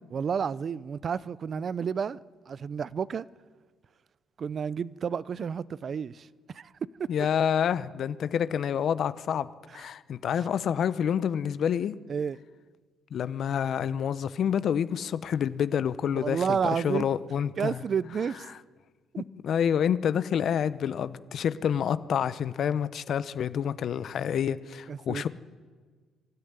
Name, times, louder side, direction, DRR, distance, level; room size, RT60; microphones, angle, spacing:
voice 1, 0.1-2.2 2.5-3.3 4.4-6.3 6.5-6.7 7.0-7.1 9.7-9.9 10.3-10.5 12.1-12.4 16.1-17.1 17.6-18.5 19.1-19.2 24.9-25.3, right 7 dB, 50° right, 0.6 m, -31 dB
voice 2, 7.1-9.5 9.7-12.0 13.1-17.8 19.4-25.3, left 8 dB, 60° left, 0.9 m, -28 dB
23.5 x 13.0 x 9.7 m
supercardioid pair, 75°, 0 cm